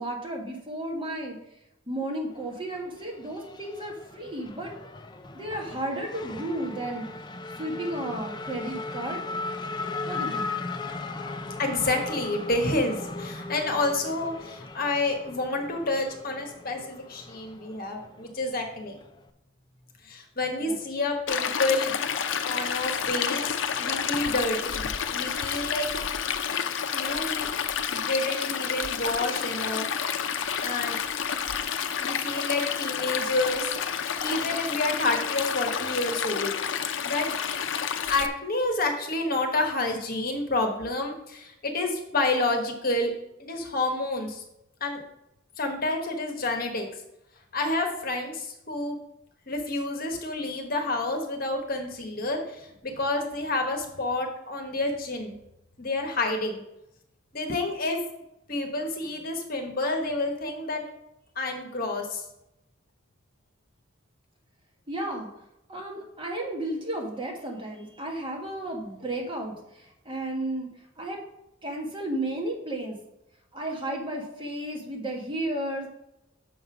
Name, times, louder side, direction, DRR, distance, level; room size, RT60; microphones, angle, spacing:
voice 1, 0.0-1.4 1.9-4.7 5.3-7.1 7.6-9.2 10.1-10.5 20.7-20.8 64.9-65.3 65.7-70.7 71.0-71.2 71.6-73.0 73.5-75.9, right 1 dB, 25° right, -1 dB, 1.6 m, -33 dB
Race car auto racing / Accelerating revving vroom, 2.3-19.3, left 3 dB, 20° left, 0.5 m, -38 dB
voice 2, 11.6-19.0 20.0-22.0 22.4-25.9 26.9-27.5 27.9-29.9 30.6-31.0 32.0-33.7 34.2-36.5 37.0-37.3 38.1-43.1 43.4-44.4 44.8-45.0 45.6-46.9 47.5-49.0 49.5-55.3 55.8-56.6 57.3-58.0 58.5-60.8 61.4-62.2, left 2 dB, 45° left, 3 dB, 1.2 m, -29 dB
Stream, 21.3-38.3, left 7 dB, 70° left, 0.5 m, -30 dB
6.7 x 5.4 x 5.9 m, 0.85 s
head